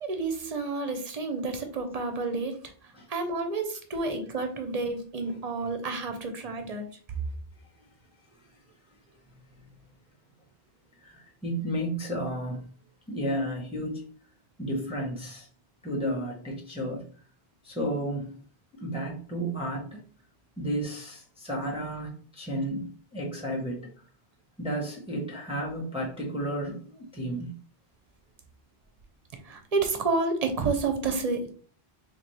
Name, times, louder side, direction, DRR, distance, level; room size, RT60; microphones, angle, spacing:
voice 1, 0.0-2.6 3.1-6.9 29.4-31.5, right 3 dB, 45° right, 6 dB, 0.7 m, -30 dB
voice 2, 11.0-12.6 13.1-14.0 14.6-15.5 15.8-17.1 17.6-18.3 18.8-20.0 20.6-23.9 24.6-27.5, right 1 dB, 5° right, -3 dB, 0.8 m, -32 dB
4.0 x 2.9 x 3.1 m, 0.43 s
omnidirectional pair, 1.1 m